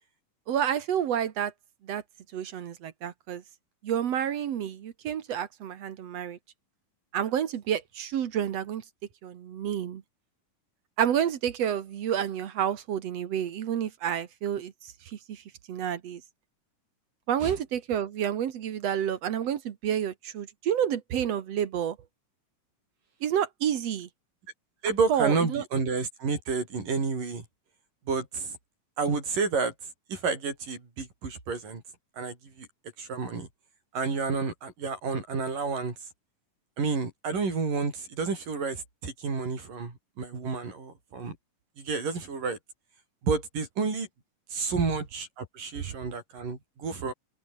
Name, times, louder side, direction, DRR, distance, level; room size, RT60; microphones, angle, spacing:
voice 1, 0.5-1.5 1.8-2.0 2.3-3.4 3.8-6.4 7.1-8.8 9.2-10.0 11.0-15.4 15.7-16.2 17.3-22.0 23.2-24.1 25.1-25.6 45.8-45.9, right 9 dB, 60° right, 2.2 m, -29 dB
voice 2, 24.8-27.4 28.1-28.6 29.0-29.7 30.1-31.8 32.2-32.7 33.0-33.5 33.9-35.9 36.8-41.4 41.8-42.6 43.2-44.1 44.5-47.1, right 4 dB, 85° right, 7.8 m, -30 dB
open air
omnidirectional pair, 3.7 m